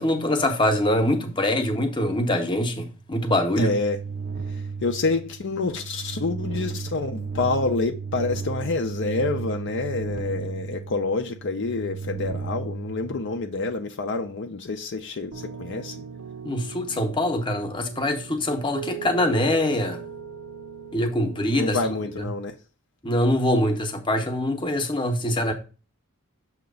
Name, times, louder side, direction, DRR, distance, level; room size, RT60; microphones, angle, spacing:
voice 1, 0.0-3.7 16.4-20.0 20.9-21.8 23.0-25.5, left 1 dB, 20° left, 0.8 m, -24 dB
sound 1, 3.0-13.7, right 5 dB, 35° right, 0.5 m, -34 dB
voice 2, 3.6-4.0 4.8-16.0 21.6-22.6, left 3 dB, 55° left, 0.5 m, -27 dB
Piano, 15.3-22.2, right 8 dB, 80° right, 0.7 m, -39 dB
6.8 x 2.9 x 5.2 m
head